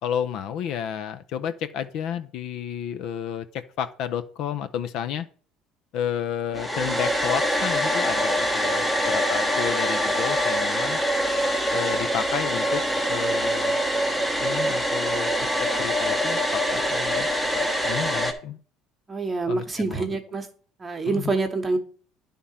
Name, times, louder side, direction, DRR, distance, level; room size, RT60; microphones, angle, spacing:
voice 1, 0.0-5.3 5.9-11.0 11.7-13.8 14.4-15.3 15.8-16.4 16.7-17.3 17.8-18.6 19.5-20.1 21.1-21.3, left 9 dB, 60° left, 11 dB, 0.6 m, -31 dB
Domestic sounds home sounds, 6.5-18.3, equal, ahead, 0.9 m, -24 dB
voice 2, 19.1-20.5 20.8-21.8, right 3 dB, 20° right, 6 dB, 1.1 m, -26 dB
10.0 x 3.6 x 5.6 m, 0.43 s
cardioid pair, 145°, 0 cm